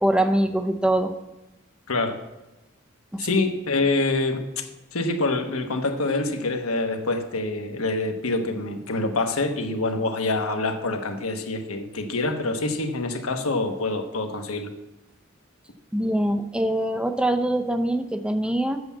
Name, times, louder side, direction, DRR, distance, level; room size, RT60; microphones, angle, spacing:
voice 1, 0.0-1.1 3.1-3.3 15.9-18.8, right 1 dB, 5° right, 8 dB, 0.5 m, -23 dB
voice 2, 1.9-2.2 3.2-14.7, left 2 dB, 85° left, 5 dB, 1.2 m, -26 dB
7.9 x 7.1 x 7.4 m, 1.0 s
head